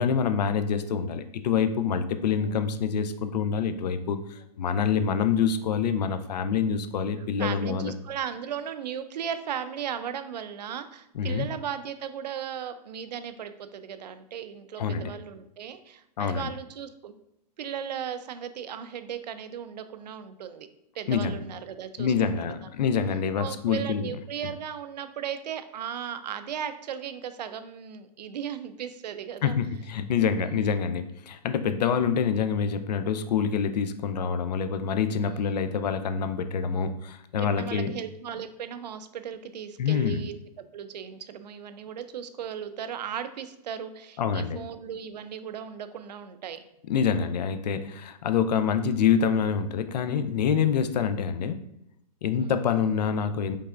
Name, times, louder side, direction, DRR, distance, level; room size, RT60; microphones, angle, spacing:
voice 1, 0.0-7.9 11.1-11.5 14.8-15.2 16.2-16.5 21.1-21.4 22.0-24.1 29.4-37.9 39.8-40.2 44.2-44.6 46.9-51.7 52.2-53.6, left 7 dB, 75° left, 9 dB, 0.5 m, -26 dB
voice 2, 7.4-17.1 17.6-20.7 20.9-22.7 23.4-29.6 30.4-30.7 35.3-35.6 36.7-37.0 37.4-40.4 40.7-46.6 52.4-52.6, right 8 dB, 75° right, 10 dB, 0.5 m, -36 dB
5.4 x 3.3 x 2.4 m, 0.81 s
hypercardioid pair, 180°, 21 cm